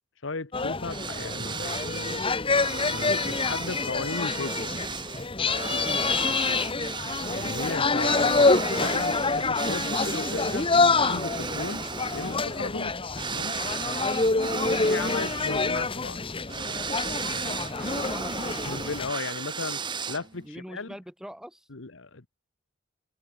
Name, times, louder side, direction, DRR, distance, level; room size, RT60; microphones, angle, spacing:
voice 1, 0.2-2.3 2.7-4.7 7.3-11.8 12.1-12.9 13.3-13.6 14.6-16.2 17.3-17.6 18.6-19.8 20.1-20.9 21.7-22.3, left 3 dB, 75° left, 1.4 m, -36 dB
sound 1, 0.5-19.1, left 3 dB, 30° left, 1.5 m, -27 dB
sound 2, 0.9-20.5, right 5 dB, 25° right, 0.8 m, -35 dB
voice 2, 5.7-6.6 12.7-12.9 13.8-14.1 17.4-18.4 20.4-21.7, equal, 5° right, 7.7 m, -43 dB
head